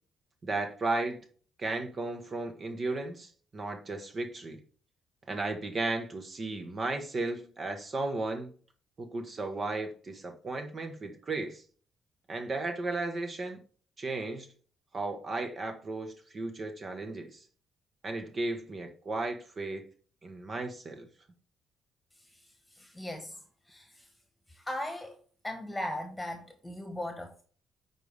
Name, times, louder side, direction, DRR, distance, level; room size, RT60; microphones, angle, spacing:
voice 1, 0.4-1.2 1.6-4.6 5.3-8.5 9.0-11.6 12.3-13.6 14.0-14.5 14.9-17.4 18.0-19.8 20.2-21.1, right 2 dB, 45° right, 1.2 m, -35 dB
voice 2, 22.7-23.4 23.7-24.0 24.5-25.1 25.4-27.4, left 1 dB, 10° left, 1.4 m, -38 dB
9.0 x 4.1 x 3.4 m
supercardioid pair, 60°, 0 cm